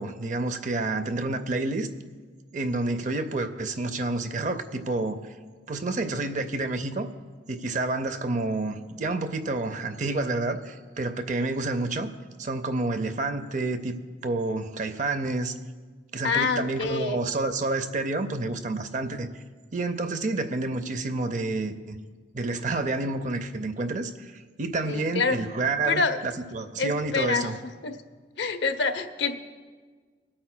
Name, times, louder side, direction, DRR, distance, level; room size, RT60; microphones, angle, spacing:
voice 1, 0.0-1.9 2.5-5.2 5.7-7.1 7.5-12.1 12.4-14.0 14.2-15.5 16.1-19.3 19.7-22.0 22.3-27.6, right 2 dB, 40° right, 9 dB, 0.5 m, -29 dB
voice 2, 16.2-17.2 24.8-25.4 25.8-26.2 26.8-27.5 27.8-27.9 28.4-29.4, left 4 dB, 65° left, 8 dB, 0.7 m, -26 dB
25.0 x 8.6 x 2.2 m, 1.5 s
head